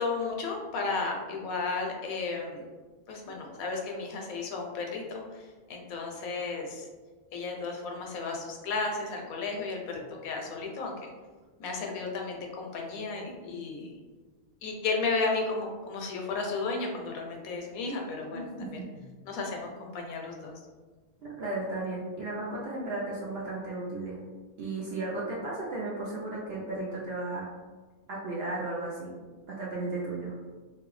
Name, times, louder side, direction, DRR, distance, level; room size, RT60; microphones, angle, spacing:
voice 1, 0.0-2.6 3.1-5.4 5.7-6.9 7.3-11.1 11.6-13.9 14.6-18.8 19.2-20.6, left 3 dB, 80° left, 1 dB, 1.0 m, -33 dB
voice 2, 18.3-19.1 21.4-24.2 24.6-27.5 28.1-29.1 29.5-30.3, right 2 dB, 60° right, -5 dB, 0.7 m, -35 dB
3.3 x 2.3 x 3.1 m, 1.4 s
omnidirectional pair, 1.5 m